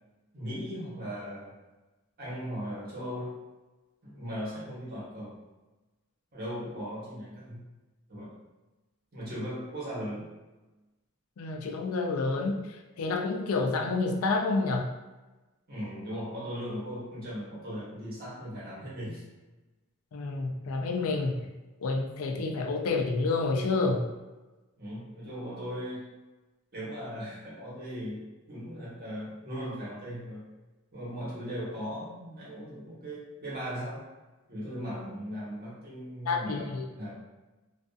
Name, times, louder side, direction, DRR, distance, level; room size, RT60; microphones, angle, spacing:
voice 1, 0.3-1.5 2.2-3.4 4.0-5.4 6.3-7.6 8.1-8.3 9.1-10.3 15.7-19.2 24.8-26.1 26.7-30.4 30.9-34.0 34.5-37.1, equal, 45° right, -8 dB, 1.0 m, -38 dB
voice 2, 11.4-12.7 13.0-14.9 20.1-21.5 21.8-24.1 36.3-36.9, left 3 dB, 75° left, 2 dB, 0.4 m, -29 dB
2.5 x 2.4 x 2.3 m, 1.1 s
head